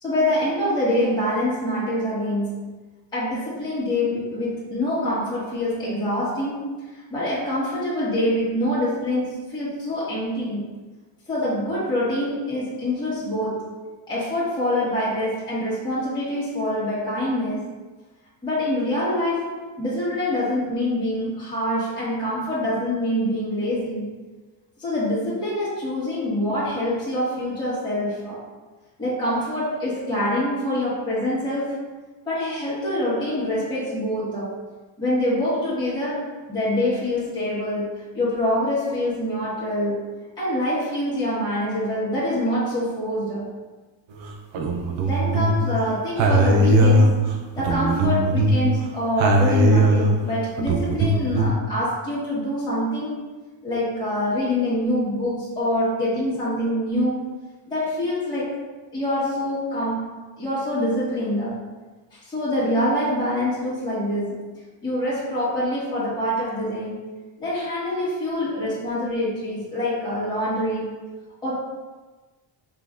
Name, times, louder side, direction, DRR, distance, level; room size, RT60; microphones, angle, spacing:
voice 1, 0.0-2.7 3.1-6.6 6.9-10.8 11.3-13.8 14.1-17.7 18.4-24.2 24.8-28.4 29.0-31.9 32.2-34.5 35.0-40.1 40.4-43.4 45.0-47.3 47.6-53.2 53.6-57.3 57.7-58.6 58.9-60.1 60.4-61.6 62.1-64.4 64.8-71.0 71.4-71.6, left 1 dB, 10° left, -11 dB, 1.4 m, -25 dB
sound 1, 44.2-45.7 46.2-48.8 49.2-51.5, right 1 dB, 70° right, 0.7 m, -19 dB
5.0 x 3.3 x 2.4 m, 1.3 s
cardioid pair, 130°, 47 cm